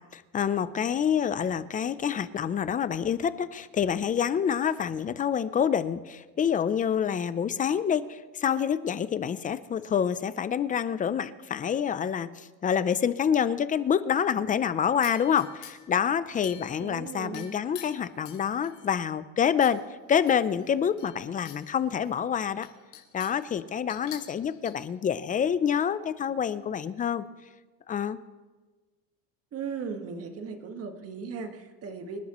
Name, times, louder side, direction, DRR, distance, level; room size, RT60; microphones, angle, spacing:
voice 1, 0.1-19.8 20.1-22.7 23.1-27.2 27.9-28.2, left 8 dB, 20° left, 14 dB, 0.4 m, -27 dB
sound 1, 15.0-16.0 16.4-17.0 17.3-18.9 19.6-19.8 20.1-21.6 22.0-22.1 22.6-23.4 23.9-24.7, left 12 dB, 85° left, 2.9 m, -47 dB
voice 2, 16.8-17.5 29.5-32.2, right 5 dB, 35° right, 6 dB, 1.5 m, -37 dB
26.0 x 11.5 x 3.0 m, 1.3 s
cardioid pair, 135°, 39 cm